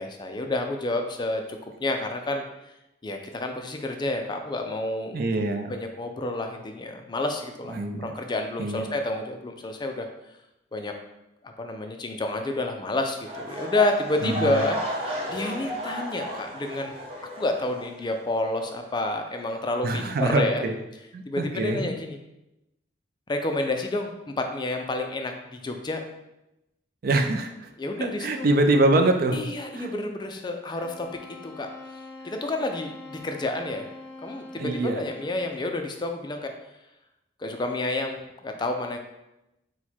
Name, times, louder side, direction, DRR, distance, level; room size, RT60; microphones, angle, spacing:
voice 1, 0.0-1.4 1.8-2.5 3.0-5.2 5.7-10.1 10.7-10.9 11.6-14.8 15.3-16.9 17.4-20.6 21.3-22.2 23.3-26.0 27.8-28.5 29.3-31.1 31.4-31.7 32.2-33.9 34.2-36.5 37.4-39.0, left 2 dB, 25° left, 4 dB, 0.4 m, -29 dB
voice 2, 5.1-5.7 7.7-8.1 8.6-8.8 14.2-14.6 19.8-20.8 21.1-21.9 27.0-27.7 28.0-29.5 29.7-29.9 34.5-35.0, right 2 dB, 55° right, 6 dB, 0.4 m, -24 dB
sound 1, 13.2-18.3 18.5-18.9 19.4-19.5, equal, 35° right, 0.9 m, -34 dB
sound 2, 30.7-35.6, left 2 dB, 55° left, 0.9 m, -44 dB
4.5 x 2.2 x 4.2 m, 0.90 s
head